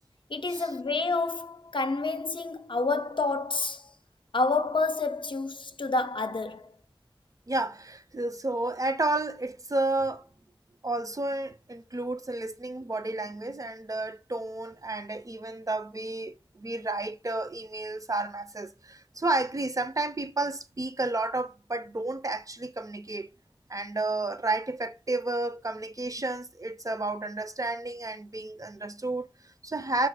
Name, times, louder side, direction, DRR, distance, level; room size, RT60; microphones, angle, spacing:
voice 1, 0.3-3.9 4.3-6.7, left 3 dB, 65° left, 0.4 m, -29 dB
voice 2, 7.5-10.3 10.8-23.3 23.7-30.1, right 2 dB, 40° right, 0.4 m, -31 dB
4.7 x 2.0 x 4.6 m
wide cardioid pair, 45°, 9 cm